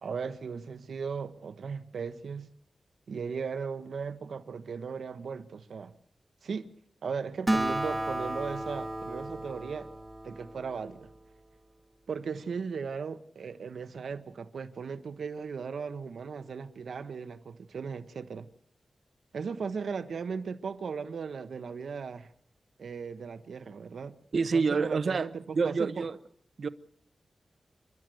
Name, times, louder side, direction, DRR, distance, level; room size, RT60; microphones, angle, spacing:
voice 1, 0.0-2.5 3.1-5.9 6.4-6.7 7.0-9.9 10.2-11.1 12.1-18.5 19.3-22.3 22.8-24.2 24.5-26.1, right 5 dB, 85° right, 1.3 m, -37 dB
Acoustic guitar, 7.5-11.2, right 1 dB, 15° right, 1.3 m, -33 dB
voice 2, 24.3-25.3 25.5-26.2 26.6-26.7, right 4 dB, 55° right, 1.0 m, -27 dB
29.5 x 12.5 x 7.9 m
wide cardioid pair, 165°, 0 cm